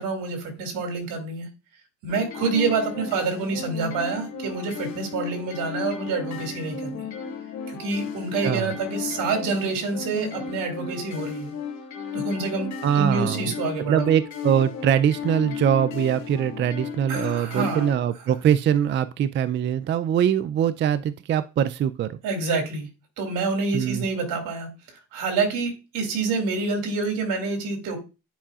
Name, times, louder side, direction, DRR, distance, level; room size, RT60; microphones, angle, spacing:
voice 1, 0.0-1.5 2.0-7.0 7.7-11.5 12.1-14.1 17.1-17.9 22.2-22.9 23.2-24.7 25.1-28.0, right 4 dB, 75° right, 4 dB, 2.4 m, -27 dB
sound 1, 2.1-18.0, left 6 dB, 55° left, 2.7 m, -34 dB
voice 2, 8.4-8.7 12.8-13.5 13.9-22.2 23.7-24.1, right 9 dB, 35° right, 14 dB, 0.4 m, -22 dB
10.0 x 4.8 x 2.4 m, 0.29 s
cardioid pair, 105°, 33 cm